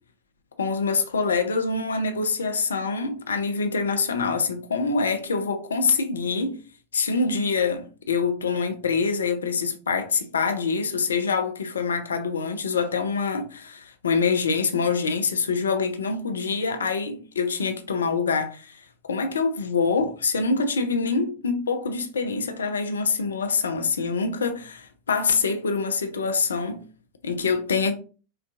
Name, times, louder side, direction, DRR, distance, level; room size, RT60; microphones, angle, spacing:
voice 1, 0.6-6.6 6.9-26.9 27.2-27.9, left 4 dB, 70° left, 0.4 m, -25 dB
3.8 x 2.3 x 2.4 m
figure-of-eight pair, 90°, 0 cm